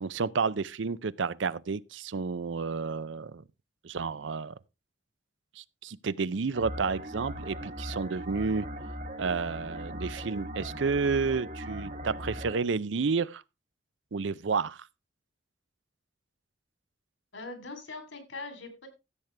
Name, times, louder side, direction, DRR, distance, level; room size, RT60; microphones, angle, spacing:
voice 1, 0.0-3.4 3.8-4.5 5.6-8.7 9.2-13.4 14.1-14.9, right 5 dB, 80° right, 0.5 m, -31 dB
mad robot ecstatic insects and toads, 6.5-12.6, equal, 40° right, 1.3 m, -39 dB
voice 2, 17.3-18.9, left 3 dB, 90° left, 3.3 m, -41 dB
14.0 x 8.1 x 3.3 m
head